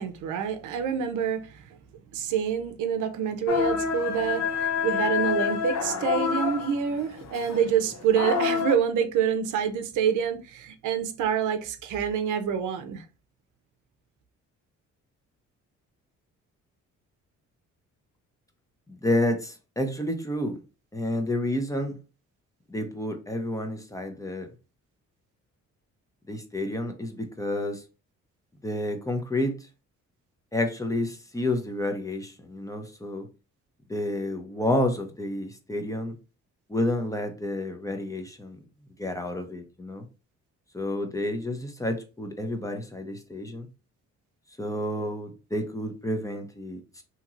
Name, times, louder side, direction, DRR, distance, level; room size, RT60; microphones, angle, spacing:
voice 1, 0.0-1.8 2.1-13.0, right 8 dB, 80° right, 0.6 m, -27 dB
sound 1, 3.5-8.8, left 6 dB, 60° left, 0.6 m, -28 dB
voice 2, 18.9-20.6 20.9-22.0 22.7-24.5 26.3-27.8 28.6-29.5 30.5-33.3 33.9-36.2 36.7-38.6 39.0-40.0 40.7-43.7 44.6-46.8, left 1 dB, 10° left, 0.6 m, -30 dB
2.9 x 2.8 x 2.4 m
cardioid pair, 90°, 30 cm